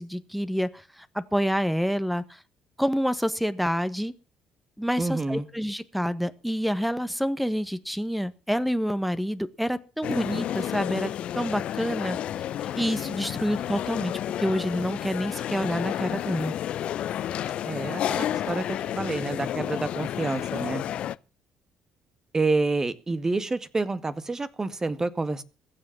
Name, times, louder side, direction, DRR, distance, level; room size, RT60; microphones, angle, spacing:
voice 1, 0.0-2.4 2.8-4.1 4.8-12.2 12.6-16.5, equal, ahead, 14 dB, 1.5 m, -28 dB
voice 2, 5.0-5.5 17.6-20.9 22.3-25.4, right 3 dB, 25° right, 13 dB, 1.9 m, -28 dB
sound 1, 10.0-21.2, left 11 dB, 60° left, 0.7 m, -31 dB
21.0 x 7.8 x 7.2 m, 0.34 s
hypercardioid pair, 55°, 2 cm